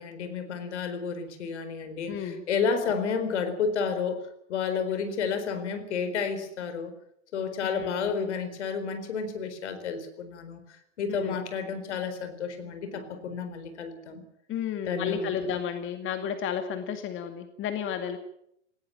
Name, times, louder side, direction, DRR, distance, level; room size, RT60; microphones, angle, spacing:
voice 1, 0.0-4.2 4.5-6.9 7.3-10.6 11.0-14.2 14.9-15.3, left 6 dB, 65° left, 9 dB, 4.3 m, -31 dB
voice 2, 2.1-2.4 7.6-8.1 11.1-11.4 14.5-18.2, left 7 dB, 35° left, 7 dB, 2.3 m, -32 dB
18.5 x 17.5 x 9.0 m, 0.73 s
figure-of-eight pair, 95°, 37 cm